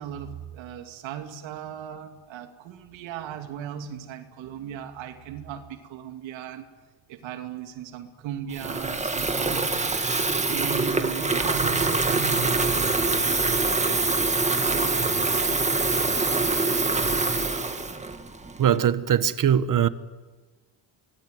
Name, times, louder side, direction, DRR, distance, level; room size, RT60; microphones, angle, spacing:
voice 1, 0.0-6.7 7.1-9.8 10.5-13.5 13.8-15.6, right 9 dB, 85° right, 2.7 m, -37 dB
Water tap faucet / Fill (with liquid), 8.5-18.8, right 3 dB, 15° right, 2.2 m, -24 dB
voice 2, 18.6-19.9, right 9 dB, 45° right, 1.3 m, -21 dB
25.0 x 19.5 x 9.5 m
cardioid pair, 110°, 45 cm